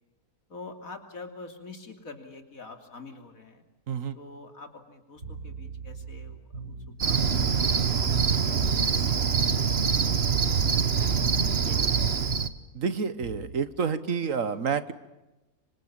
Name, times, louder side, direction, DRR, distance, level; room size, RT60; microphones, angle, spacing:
voice 1, 0.5-3.6 4.2-6.7 7.0-10.3 10.8-12.3, left 3 dB, 65° left, 6 dB, 3.5 m, -46 dB
voice 2, 3.9-4.2 12.7-14.9, right 6 dB, 60° right, 14 dB, 1.5 m, -29 dB
sound 1, 5.2-7.1 7.9-8.3 9.2-12.4 13.2-13.6, right 4 dB, 80° right, 4.0 m, -41 dB
Cricket, 7.0-12.5, right 6 dB, 45° right, 1.3 m, -24 dB
26.5 x 25.5 x 8.7 m, 1.0 s
omnidirectional pair, 1.6 m